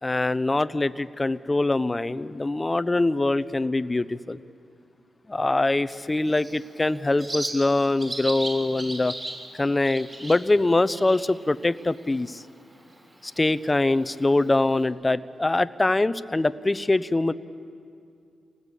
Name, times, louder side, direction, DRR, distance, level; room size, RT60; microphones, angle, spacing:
voice 1, 0.0-4.4 5.3-9.1 9.5-12.4 13.2-17.3, left 2 dB, 25° left, 14 dB, 0.8 m, -23 dB
Bird, 5.9-14.9, right 1 dB, 30° right, 6.1 m, -39 dB
28.0 x 19.5 x 8.3 m, 2.4 s
cardioid pair, 70°, 0 cm